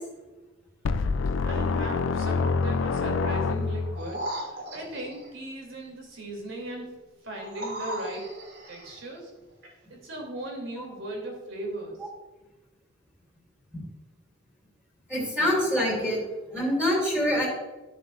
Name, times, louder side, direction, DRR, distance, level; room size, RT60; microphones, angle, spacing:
sound 1, 0.9-4.1, left 4 dB, 75° left, 0.4 m, -26 dB
voice 1, 1.4-6.9 7.2-8.3 8.7-9.3 9.9-12.0, right 1 dB, 80° right, 0 dB, 3.0 m, -37 dB
sound 2, 3.9-5.3 7.4-9.0 9.6-9.7, right 1 dB, 60° right, 3.1 m, -37 dB
voice 2, 15.1-16.2 16.5-17.5, left 1 dB, 5° right, -5 dB, 3.0 m, -25 dB
13.5 x 6.8 x 2.5 m, 1.2 s
head